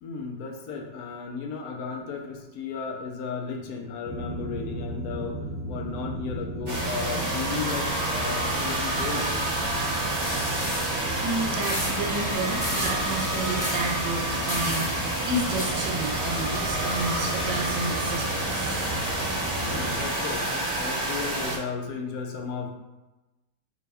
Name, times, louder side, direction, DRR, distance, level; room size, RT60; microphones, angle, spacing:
voice 1, 0.0-9.4 19.6-22.7, left 5 dB, 75° left, 2 dB, 0.9 m, -35 dB
sound 1, 4.0-20.0, right 1 dB, 65° right, 1.0 m, -35 dB
sound 2, 6.7-21.6, right 1 dB, 35° right, 0.5 m, -29 dB
sound 3, 10.1-10.9 11.6-11.9 12.6-12.9 13.6-13.8 14.5-14.9 15.6-15.7, left 1 dB, 45° left, 0.3 m, -32 dB
voice 2, 11.2-18.9, right 2 dB, 85° right, 0 dB, 1.3 m, -31 dB
4.1 x 2.2 x 3.3 m, 1.1 s
omnidirectional pair, 2.0 m